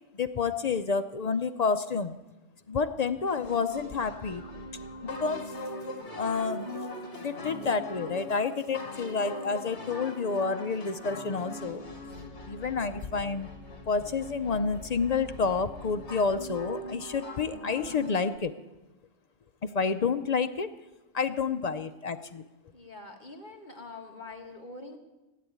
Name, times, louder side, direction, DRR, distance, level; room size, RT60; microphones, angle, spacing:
voice 1, 0.1-2.2 2.7-4.4 5.0-5.4 6.2-6.7 7.2-11.8 12.4-13.5 13.9-18.5 19.6-20.7 21.1-22.4, left 5 dB, 75° left, 10 dB, 0.3 m, -29 dB
sound 1, 3.3-18.4, left 1 dB, 55° left, 2.6 m, -41 dB
voice 2, 22.7-25.0, left 3 dB, 35° left, 2 dB, 1.9 m, -44 dB
16.0 x 8.4 x 9.2 m, 1.1 s
omnidirectional pair, 1.5 m